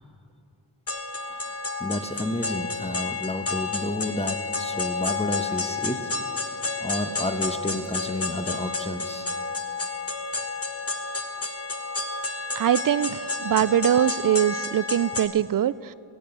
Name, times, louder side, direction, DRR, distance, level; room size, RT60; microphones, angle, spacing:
sound 1, 0.9-15.3, left 3 dB, 35° left, 1.5 m, -30 dB
voice 1, 1.3-6.1 6.3-9.3, left 1 dB, 15° left, 8 dB, 1.1 m, -31 dB
voice 2, 12.6-15.9, right 11 dB, 50° right, 19 dB, 0.5 m, -23 dB
17.0 x 8.9 x 8.0 m, 2.7 s
cardioid pair, 45°, 43 cm